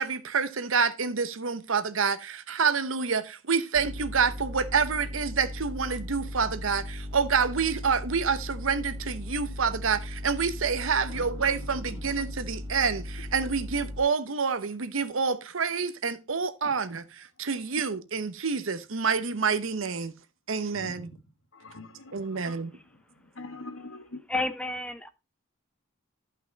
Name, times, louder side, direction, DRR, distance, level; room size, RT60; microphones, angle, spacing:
voice 1, 0.0-20.1 20.5-21.1 22.1-22.7, right 5 dB, 70° right, 0.9 m, -28 dB
sound 1, 3.7-14.0, left 1 dB, 15° right, 1.4 m, -37 dB
voice 2, 11.1-12.0 16.6-16.7 20.7-21.2 21.5-22.6 22.9-23.0 23.3-24.2, left 2 dB, 65° left, 1.4 m, -44 dB
voice 3, 24.3-25.1, left 2 dB, 5° left, 0.6 m, -31 dB
11.0 x 5.7 x 3.9 m
head